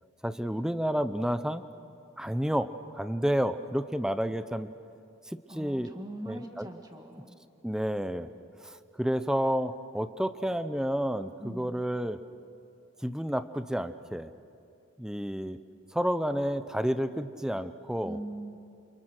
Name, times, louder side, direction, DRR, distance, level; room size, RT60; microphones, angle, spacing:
voice 1, 0.2-1.6 2.2-4.7 5.3-6.0 6.2-6.7 7.6-8.3 8.6-12.2 13.0-14.3 15.0-15.6 15.9-18.2, equal, 5° right, 11 dB, 0.6 m, -30 dB
voice 2, 5.5-7.4 11.4-11.8 18.0-18.6, right 1 dB, 20° right, 3 dB, 2.1 m, -41 dB
28.5 x 27.5 x 6.5 m, 2.5 s
head